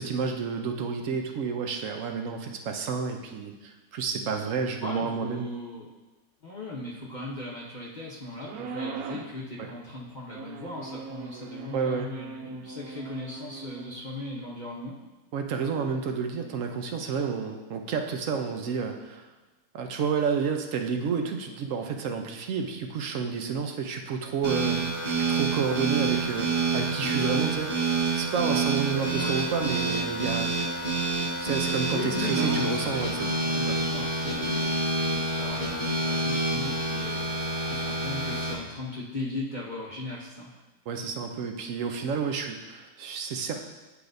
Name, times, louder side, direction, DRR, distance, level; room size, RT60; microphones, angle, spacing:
voice 1, 0.0-5.5 9.6-9.7 11.7-12.1 15.3-19.2 19.7-30.5 31.1-33.4 33.7-33.8 40.9-43.6, right 6 dB, 65° right, 4 dB, 1.0 m, -30 dB
voice 2, 4.8-5.9 6.4-14.9 26.8-27.1 29.2-29.4 31.9-40.5, left 2 dB, 40° left, -5 dB, 0.7 m, -38 dB
sound 1, 8.4-9.4 10.3-13.9, right 5 dB, 90° right, 1.1 m, -40 dB
sound 2, 24.4-38.5, right 3 dB, 40° right, 1.6 m, -28 dB
9.9 x 4.8 x 2.6 m, 1.1 s
omnidirectional pair, 1.5 m